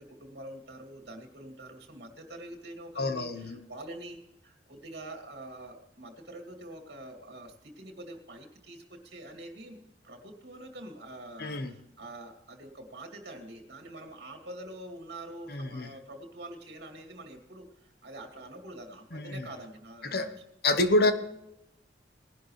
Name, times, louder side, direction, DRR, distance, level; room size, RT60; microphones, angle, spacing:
voice 1, 0.0-9.8 10.0-20.4, right 1 dB, 60° right, 4 dB, 2.5 m, -45 dB
voice 2, 3.0-3.6 11.4-11.7 15.5-15.9 19.1-19.5 20.0-20.3 20.6-21.1, left 2 dB, 60° left, 9 dB, 1.2 m, -27 dB
19.0 x 11.5 x 3.2 m, 0.83 s
head